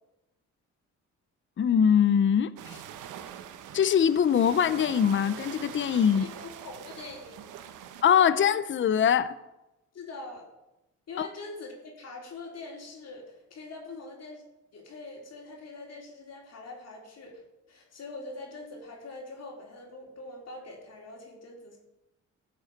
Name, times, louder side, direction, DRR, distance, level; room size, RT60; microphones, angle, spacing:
voice 1, 1.6-2.8 3.7-6.3 8.0-9.3 11.2-11.3, left 8 dB, 40° left, 0.7 m, -23 dB
sound 1, 2.6-8.0, right 9 dB, 90° right, 1.1 m, -43 dB
voice 2, 6.1-7.4 9.9-10.5 11.1-14.4 14.7-17.4 17.7-21.8, left 2 dB, 55° left, 3.8 m, -43 dB
13.5 x 7.1 x 7.3 m
cardioid pair, 90°, 30 cm